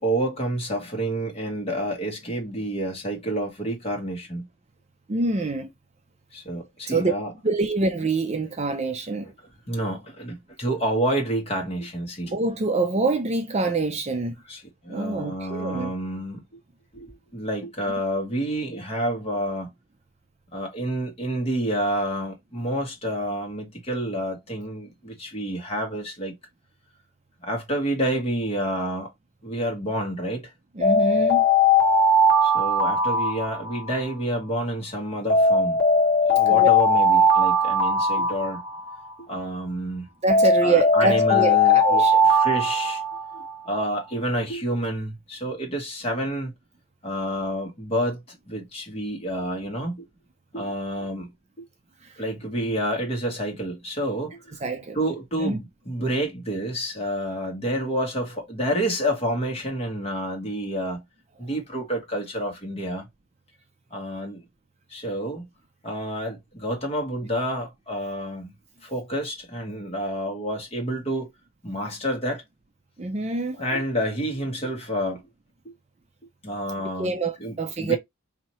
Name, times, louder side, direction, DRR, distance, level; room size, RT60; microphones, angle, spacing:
voice 1, 0.0-4.4 6.3-7.3 9.2-9.3 9.7-12.3 14.5-16.4 16.9-19.7 20.5-26.3 27.4-29.1 29.4-30.5 32.4-35.8 36.3-38.6 39.2-40.1 40.6-43.0 43.3-46.5 47.0-50.0 50.5-51.3 51.6-51.7 52.2-54.4 54.9-61.0 61.4-63.0 63.9-64.4 64.9-65.4 65.8-68.5 68.8-71.3 71.6-72.4 73.6-75.2 75.6-75.7 76.4-77.1 77.4-78.0, right 1 dB, 25° left, 1.3 m, -29 dB
voice 2, 5.1-5.7 6.9-7.1 7.4-9.3 12.3-14.4 14.9-15.9 30.8-31.4 36.4-36.7 40.2-42.2 52.0-52.2 54.6-55.0 55.4-55.6 73.0-73.6 77.0-78.0, right 3 dB, 30° right, 0.4 m, -25 dB
Alarm, 30.8-34.1 35.3-39.1 40.3-43.6, left 1 dB, 50° left, 1.4 m, -19 dB
4.3 x 2.7 x 3.0 m
head